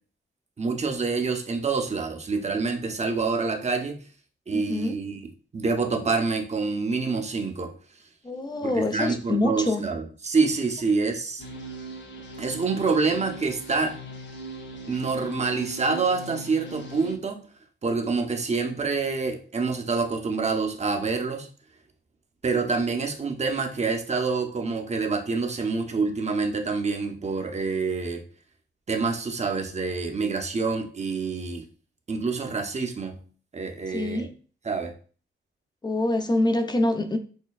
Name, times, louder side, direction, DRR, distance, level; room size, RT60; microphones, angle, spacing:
voice 1, 0.6-4.0 4.5-5.2 5.5-7.7 8.6-11.4 12.4-14.0 14.9-17.4 17.8-21.5 22.4-28.2 28.9-31.7 32.1-33.2 33.5-34.3 34.6-34.9, right 4 dB, 35° right, 0.7 m, -27 dB
voice 2, 4.5-4.9 8.2-9.8 33.9-34.3 35.8-37.2, left 2 dB, 20° left, 0.6 m, -25 dB
sound 1, 11.4-17.2, right 2 dB, 60° left, 0.8 m, -40 dB
6.2 x 2.2 x 2.3 m
cardioid pair, 70°, 21 cm